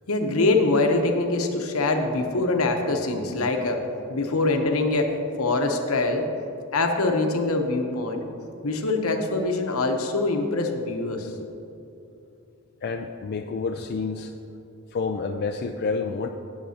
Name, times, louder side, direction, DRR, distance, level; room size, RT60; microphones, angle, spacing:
voice 1, 0.1-3.8 4.1-5.1 5.4-6.3 6.7-8.3 8.6-11.3, left 2 dB, 80° left, 4 dB, 1.0 m, -24 dB
voice 2, 12.8-14.3 14.9-16.3, left 4 dB, 50° left, 5 dB, 0.4 m, -29 dB
17.0 x 6.7 x 2.9 m, 2.8 s
head